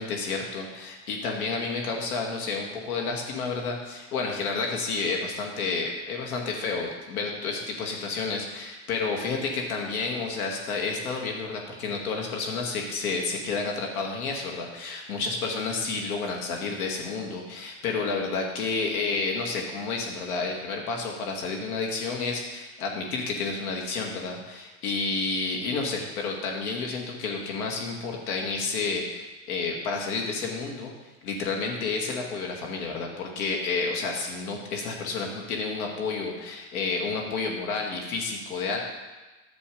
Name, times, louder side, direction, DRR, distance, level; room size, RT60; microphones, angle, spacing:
voice 1, 0.0-30.9 31.2-38.8, left 4 dB, 80° left, 0 dB, 2.3 m, -30 dB
11.0 x 6.9 x 5.4 m, 1.2 s
hypercardioid pair, 95°, 42 cm